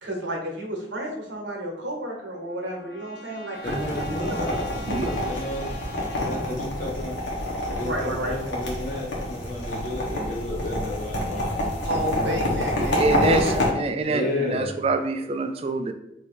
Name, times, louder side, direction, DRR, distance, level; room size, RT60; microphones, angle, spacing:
voice 1, 0.0-4.4 7.8-8.3 11.8-13.6, right 1 dB, 75° right, 1 dB, 1.0 m, -32 dB
Trumpet, 2.0-6.6, left 2 dB, 65° left, 0.9 m, -45 dB
sound 1, 3.6-13.7, left 1 dB, 80° left, 1.2 m, -28 dB
voice 2, 3.6-7.2 7.6-13.5 14.0-14.8, left 1 dB, 40° left, -3 dB, 1.2 m, -32 dB
voice 3, 12.8-15.9, right 3 dB, 30° right, 7 dB, 0.3 m, -25 dB
3.2 x 2.8 x 4.3 m, 0.85 s
head